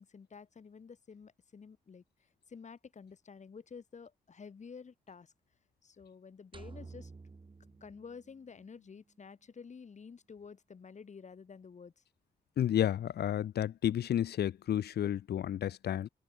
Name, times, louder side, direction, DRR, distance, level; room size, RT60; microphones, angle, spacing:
voice 1, 0.0-2.0 2.5-5.3 5.8-7.1 7.8-12.0, left 5 dB, 45° left, 6.6 m, -51 dB
sound 1, 6.5-8.8, right 4 dB, 30° right, 4.8 m, -51 dB
voice 2, 12.6-16.1, left 10 dB, 85° left, 2.5 m, -31 dB
cardioid pair, 90°, 16 cm